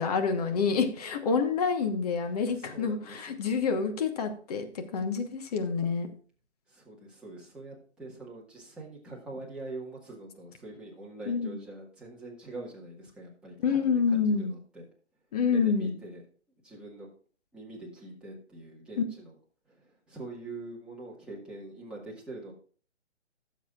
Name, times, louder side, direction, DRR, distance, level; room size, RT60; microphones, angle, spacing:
voice 1, 0.0-6.1 11.3-11.6 13.6-14.5 15.3-15.9 19.0-19.1, left 5 dB, 35° left, 6 dB, 1.2 m, -27 dB
voice 2, 2.6-3.2 6.7-14.8 15.5-16.2 16.6-17.1 17.5-19.3 19.7-22.5, right 2 dB, 5° right, -5 dB, 1.7 m, -44 dB
15.5 x 7.4 x 2.4 m, 0.42 s
figure-of-eight pair, 145°, 35 cm